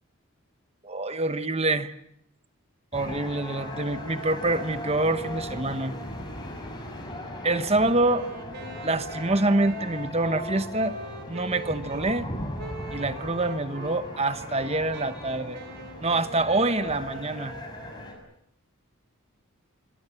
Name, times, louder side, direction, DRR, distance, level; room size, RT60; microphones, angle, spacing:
voice 1, 0.8-1.9 2.9-6.0 7.4-8.3 8.8-11.0 11.3-12.3 12.9-15.6 16.0-17.5, right 2 dB, 30° right, 11 dB, 1.2 m, -26 dB
sound 1, 2.9-18.1, left 1 dB, 20° left, 6.6 m, -38 dB
Wind instrument woodwind instrument, 7.9-12.1 12.6-14.0 14.4-17.6, right 3 dB, 50° right, 4.4 m, -43 dB
27.5 x 23.5 x 7.0 m, 0.73 s
head